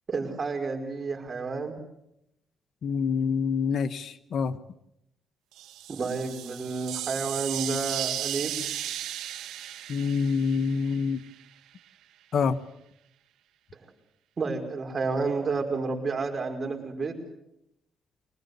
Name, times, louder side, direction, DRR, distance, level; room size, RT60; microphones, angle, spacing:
voice 1, 0.1-1.8 5.9-8.5 14.4-17.1, right 4 dB, 40° right, 3 dB, 5.3 m, -30 dB
voice 2, 2.8-4.6 9.9-11.2 12.3-12.6, left 5 dB, 60° left, 12 dB, 1.2 m, -26 dB
sound 1, 5.5-11.4, right 12 dB, 85° right, 1.8 m, -35 dB
24.5 x 20.0 x 8.3 m, 0.81 s
cardioid pair, 90°, 0 cm